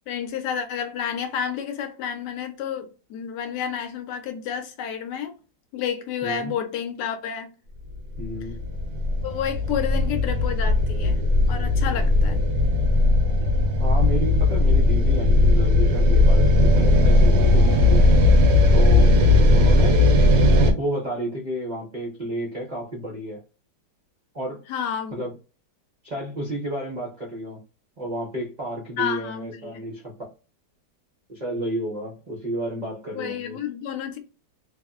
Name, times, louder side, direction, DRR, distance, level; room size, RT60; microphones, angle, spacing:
voice 1, 0.1-5.3 5.7-7.5 9.2-11.2 11.5-12.4 24.7-25.2 29.0-29.8 33.1-34.2, left 8 dB, 75° left, 1.1 m, -30 dB
voice 2, 8.2-8.6 13.8-18.4 18.7-20.0 20.6-23.4 24.3-24.6 25.1-25.3 26.0-27.6 28.0-30.1 31.3-33.6, right 1 dB, 60° right, 0.4 m, -31 dB
sound 1, 8.2-20.7, left 2 dB, 90° right, 1.4 m, -17 dB
3.3 x 2.0 x 2.3 m
omnidirectional pair, 1.9 m